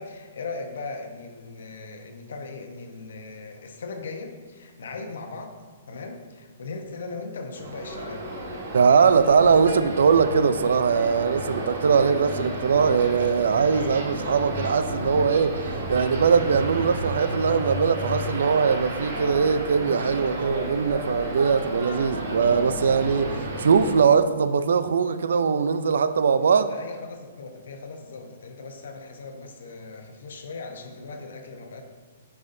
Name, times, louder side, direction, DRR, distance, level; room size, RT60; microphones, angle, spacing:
voice 1, 0.0-5.5 5.9-8.2 26.6-31.8, left 3 dB, 80° left, 1.0 m, -38 dB
sound 1, 7.5-23.9, right 1 dB, 65° right, 1.7 m, -32 dB
voice 2, 8.7-15.6 15.9-23.3 23.6-26.7, right 6 dB, 80° right, 0.4 m, -21 dB
9.4 x 5.5 x 2.7 m
hypercardioid pair, 170°, 0 cm